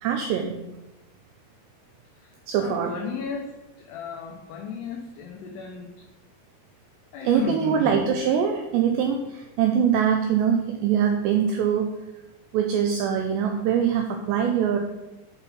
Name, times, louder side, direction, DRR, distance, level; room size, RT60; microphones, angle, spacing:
voice 1, 0.0-0.6 2.5-2.9 7.2-11.9 12.5-14.8, right 8 dB, 90° right, 4 dB, 2.5 m, -23 dB
voice 2, 2.2-3.5 3.8-6.1 7.1-8.1, left 6 dB, 85° left, 2 dB, 2.3 m, -35 dB
7.9 x 4.1 x 5.5 m, 1.0 s
omnidirectional pair, 5.6 m